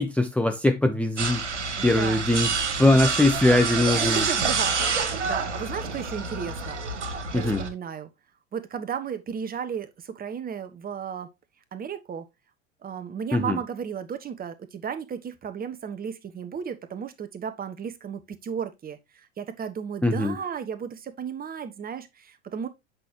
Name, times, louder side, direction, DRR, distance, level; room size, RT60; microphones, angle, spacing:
voice 1, 0.0-1.4 1.8-2.5 2.8-4.3 7.3-7.6 13.3-13.6 20.0-20.4, left 2 dB, 5° left, 0.7 m, -21 dB
sound 1, 1.2-7.7, right 4 dB, 80° right, 1.8 m, -28 dB
voice 2, 1.8-2.3 2.9-3.0 3.9-6.8 7.3-8.1 8.5-11.3 11.7-12.3 12.8-22.7, right 7 dB, 25° right, 1.3 m, -34 dB
8.3 x 6.3 x 2.9 m
figure-of-eight pair, 85°, 35 cm